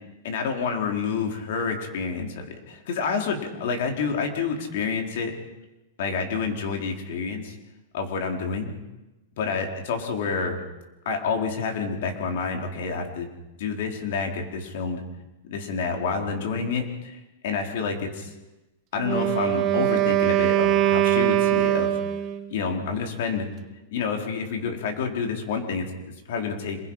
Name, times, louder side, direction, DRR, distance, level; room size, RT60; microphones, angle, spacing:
voice 1, 0.2-5.3 6.0-7.5 7.9-8.7 9.4-10.6 11.0-13.3 13.6-15.0 15.5-18.3 18.9-22.0 22.5-23.5 23.9-26.8, left 5 dB, 55° left, 3 dB, 4.3 m, -28 dB
Wind instrument woodwind instrument, 19.0-22.5, right 13 dB, 25° right, 1.2 m, -22 dB
27.0 x 22.0 x 5.8 m, 1.0 s
supercardioid pair, 165°, 0 cm